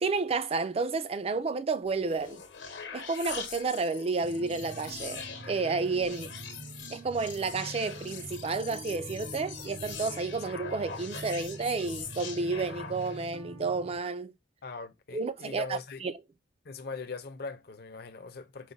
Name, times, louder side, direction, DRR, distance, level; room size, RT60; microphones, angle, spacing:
voice 1, 0.0-2.4 2.9-6.3 6.9-14.3 15.1-16.1, right 4 dB, 30° right, 0.3 m, -31 dB
sound 1, 1.9-13.4, left 6 dB, 75° left, 0.9 m, -43 dB
sound 2, 4.2-14.0, right 2 dB, 85° right, 2.4 m, -45 dB
voice 2, 14.6-16.1 16.6-18.7, left 4 dB, 55° left, 0.6 m, -40 dB
4.9 x 2.1 x 3.8 m
head